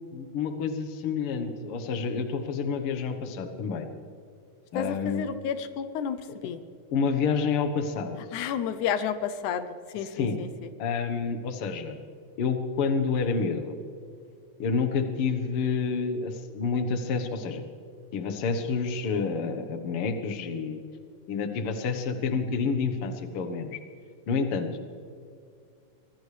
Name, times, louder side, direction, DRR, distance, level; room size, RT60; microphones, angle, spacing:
voice 1, 0.1-3.9 4.7-5.3 6.9-8.2 10.1-10.4 10.8-12.0 12.4-13.8 14.6-17.6 18.1-20.8 21.3-23.8 24.3-24.7, left 5 dB, 55° left, 7 dB, 1.9 m, -28 dB
voice 2, 4.7-6.2 6.4-6.6 8.3-10.7, left 7 dB, 85° left, 11 dB, 2.2 m, -31 dB
24.0 x 18.0 x 3.4 m, 2.4 s
omnidirectional pair, 3.4 m